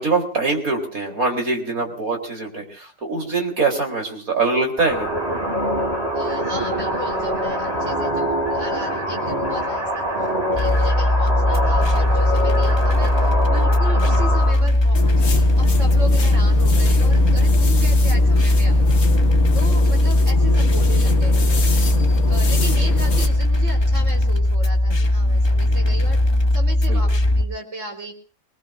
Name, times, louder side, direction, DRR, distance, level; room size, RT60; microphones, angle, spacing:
voice 1, 0.0-5.1 26.8-27.0, right 3 dB, 85° right, 1 dB, 4.3 m, -23 dB
sound 1, 4.8-14.5, equal, 15° right, 6.8 m, -24 dB
voice 2, 6.1-10.1 10.5-19.0 19.5-21.8 22.3-28.1, right 2 dB, 60° right, 2 dB, 4.1 m, -35 dB
sound 2, 10.5-27.4, left 1 dB, 25° left, 0.6 m, -18 dB
sound 3, 14.9-23.3, left 5 dB, 80° left, 2.0 m, -26 dB
26.0 x 20.0 x 2.6 m, 0.40 s
omnidirectional pair, 1.4 m